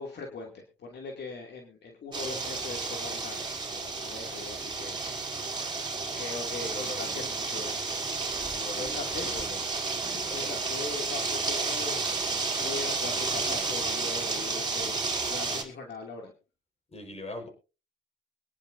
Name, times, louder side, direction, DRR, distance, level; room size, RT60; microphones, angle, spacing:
voice 1, 0.0-5.0 6.2-7.8 8.7-9.4 10.0-12.0 12.6-15.0 15.3-16.3, left 4 dB, 60° left, 1 dB, 2.7 m, -40 dB
sound 1, 2.1-15.6, right 4 dB, 20° right, 4.6 m, -31 dB
voice 2, 6.7-7.2 8.5-9.6 10.1-10.6 16.9-17.5, left 2 dB, 30° left, 5 dB, 4.9 m, -41 dB
24.0 x 10.5 x 2.7 m, 0.33 s
cardioid pair, 90°, 20 cm